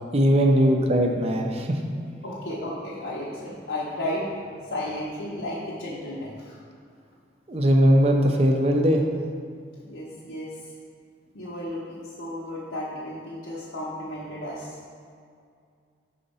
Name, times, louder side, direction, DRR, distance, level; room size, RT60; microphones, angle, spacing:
voice 1, 0.1-1.8 7.5-9.1, equal, 30° right, 2 dB, 0.5 m, -20 dB
voice 2, 2.2-4.3 4.7-6.6 9.8-10.5 11.3-14.8, left 1 dB, 85° left, -7 dB, 0.9 m, -33 dB
4.9 x 3.9 x 5.5 m, 2.3 s
head